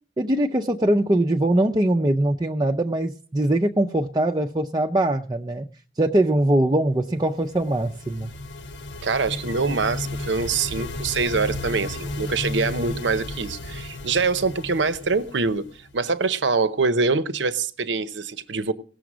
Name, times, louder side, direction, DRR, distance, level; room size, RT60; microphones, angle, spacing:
voice 1, 0.2-5.7 6.0-8.3, right 1 dB, 20° right, 0.5 m, -22 dB
sound 1, 7.2-16.0, left 2 dB, 90° left, 1.1 m, -34 dB
voice 2, 9.0-18.7, right 4 dB, 80° right, 0.8 m, -24 dB
18.0 x 6.9 x 6.1 m
head